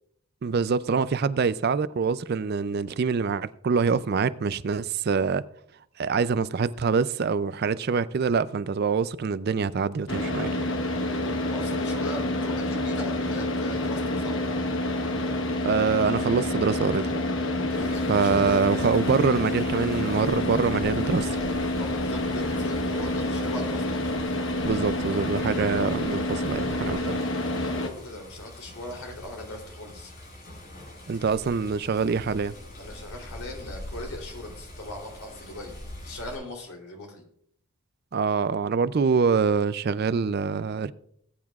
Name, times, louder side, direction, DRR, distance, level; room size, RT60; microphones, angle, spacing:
voice 1, 0.4-5.4 6.0-10.7 15.6-17.1 18.1-21.4 24.6-27.2 31.1-32.5 38.1-40.9, right 5 dB, 45° right, 0.4 m, -25 dB
Car / Idling, 10.1-27.9, left 1 dB, 60° left, 1.2 m, -28 dB
voice 2, 11.1-14.4 17.7-18.6 21.8-23.8 27.6-30.1 32.8-35.7 36.0-37.2, left 1 dB, 75° left, 3.2 m, -39 dB
Water, 17.7-36.3, left 1 dB, 45° left, 4.9 m, -44 dB
19.5 x 9.3 x 2.4 m
head